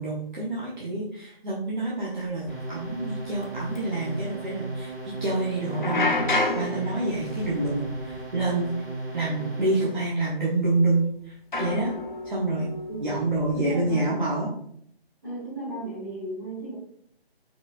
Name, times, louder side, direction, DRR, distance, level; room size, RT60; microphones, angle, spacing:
voice 1, 0.0-4.9 5.2-8.7 9.1-11.9 12.2-12.7 13.0-14.5, right 2 dB, 50° right, -6 dB, 1.1 m, -27 dB
Metal drying frame gong, 2.2-2.3 2.8-3.0 3.3-3.4 3.7-3.8 5.7-8.7 8.9-9.3 10.2-10.3 11.5-13.9, left 2 dB, 50° left, 0.6 m, -30 dB
sound 1, 2.5-10.0, right 2 dB, 10° left, 1.7 m, -36 dB
voice 2, 13.5-14.1 15.2-16.7, right 2 dB, 20° right, -11 dB, 1.9 m, -34 dB
4.9 x 3.8 x 2.6 m, 0.67 s
figure-of-eight pair, 170°, 31 cm